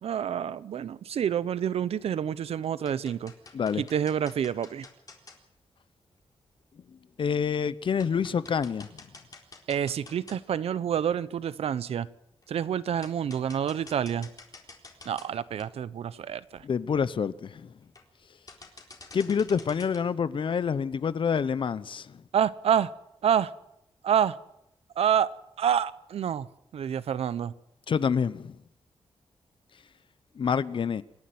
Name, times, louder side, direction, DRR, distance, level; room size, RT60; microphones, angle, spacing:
voice 1, 0.0-3.3 3.8-4.9 9.7-12.1 12.5-14.3 15.0-16.6 22.3-22.9 23.2-23.5 24.0-24.4 25.0-25.3 25.6-26.5 26.7-27.5, right 9 dB, 90° right, 0.9 m, -28 dB
sound 1, 1.9-2.3 2.6-5.4 6.5-6.6 7.1-7.2 7.6-7.7 8.0-10.7 11.1-11.2 12.4-12.5 13.0-15.3 15.6-15.7 16.2-16.3 16.5-16.6 16.9-17.2 17.8-18.2 18.5-20.0, left 3 dB, 40° left, 4.1 m, -49 dB
voice 2, 7.2-8.9 16.6-17.7 19.1-22.1 27.9-28.6 30.4-31.0, left 6 dB, 55° left, 0.9 m, -27 dB
27.0 x 11.5 x 9.4 m
wide cardioid pair, 120°, 10 cm